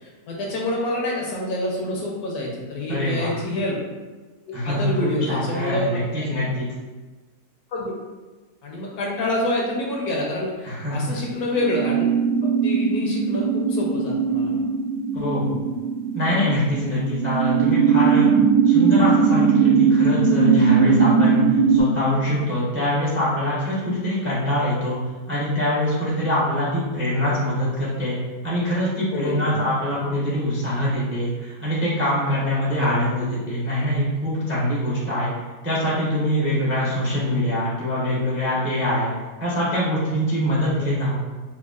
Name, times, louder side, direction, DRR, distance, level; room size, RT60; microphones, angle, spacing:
voice 1, 0.0-3.8 4.5-6.3 7.7-7.9 8.6-12.0 12.6-14.5 22.3-22.4 29.1-29.6 32.8-33.0 40.8-40.9, left 1 dB, 70° left, -3 dB, 1.2 m, -27 dB
voice 2, 2.9-3.4 4.5-6.7 10.6-11.2 15.1-15.6 16.1-18.3 18.6-21.4 21.7-25.0 25.3-28.1 28.4-35.3 35.6-39.1 39.4-41.2, left 1 dB, 20° right, -7 dB, 0.3 m, -24 dB
sound 1, 11.5-21.8, right 6 dB, 75° right, 1.1 m, -19 dB
4.6 x 2.3 x 2.4 m, 1.2 s
omnidirectional pair, 1.8 m